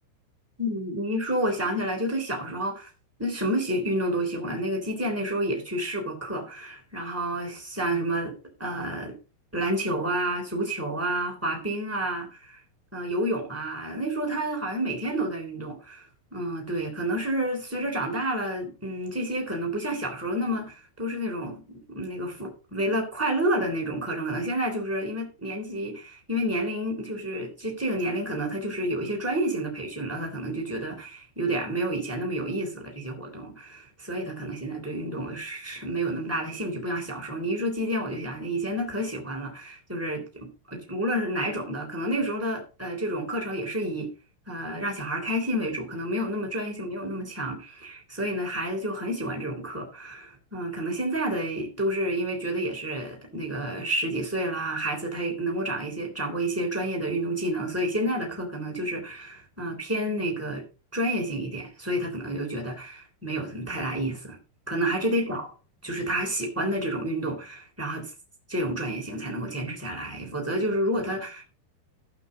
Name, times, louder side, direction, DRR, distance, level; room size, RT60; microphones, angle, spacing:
voice 1, 0.6-2.9 3.2-8.3 8.6-9.1 9.5-12.6 12.9-16.0 16.3-44.1 44.5-60.6 60.9-64.4 64.7-65.5 65.8-68.1 68.5-71.4, right 1 dB, 5° right, 2.0 m, -29 dB
14.0 x 5.3 x 5.2 m
omnidirectional pair, 5.8 m